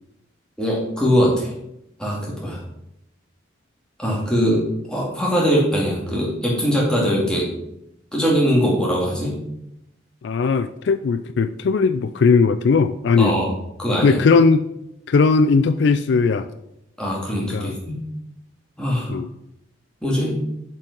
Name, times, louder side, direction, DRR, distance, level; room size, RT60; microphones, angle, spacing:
voice 1, 0.6-1.5 2.0-2.6 4.0-4.6 4.9-7.5 8.1-9.4 13.2-13.5 13.8-14.2 17.0-18.0 18.8-19.1 20.0-20.4, equal, 5° left, -4 dB, 2.3 m, -21 dB
voice 2, 10.2-13.3 14.0-14.7 15.1-16.5 17.5-17.7 19.1-19.3, left 4 dB, 65° left, 12 dB, 0.3 m, -18 dB
7.0 x 5.5 x 5.4 m, 0.82 s
head